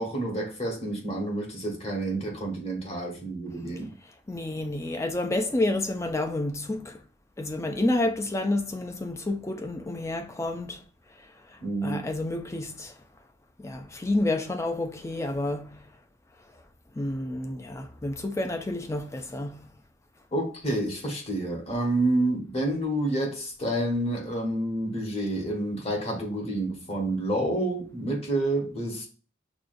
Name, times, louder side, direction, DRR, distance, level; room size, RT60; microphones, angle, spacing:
voice 1, 0.0-3.9 11.6-12.0 20.3-29.1, right 1 dB, 30° left, 1.1 m, -29 dB
voice 2, 4.0-7.0 7.4-10.8 11.2-13.0 13.6-15.9 16.5-16.6 16.9-19.7, left 2 dB, 15° left, 0.4 m, -30 dB
6.0 x 2.3 x 2.5 m
head